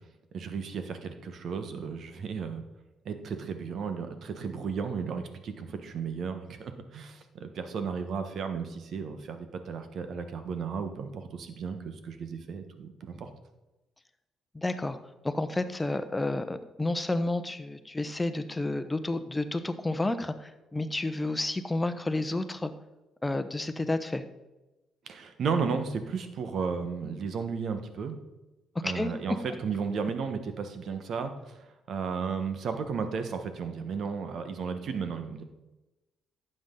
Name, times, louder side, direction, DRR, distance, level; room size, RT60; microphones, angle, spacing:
voice 1, 0.3-2.6 3.0-13.3 25.1-28.2 28.8-31.6 31.9-35.4, right 5 dB, 60° right, 8 dB, 1.3 m, -34 dB
voice 2, 14.5-15.0 15.2-22.7 23.2-24.2 28.8-29.1, left 2 dB, 15° left, 10 dB, 0.9 m, -30 dB
11.5 x 7.9 x 3.9 m, 1.0 s
cardioid pair, 80°, 0 cm